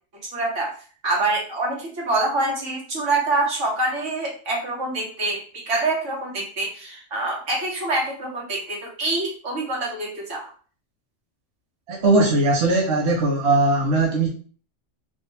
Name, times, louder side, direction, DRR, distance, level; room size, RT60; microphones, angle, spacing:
voice 1, 0.3-0.7 1.0-10.5, right 2 dB, 85° right, 1.6 m, -25 dB
voice 2, 11.9-14.3, right 2 dB, 65° right, 1.1 m, -19 dB
3.5 x 2.5 x 4.1 m
omnidirectional pair, 1.2 m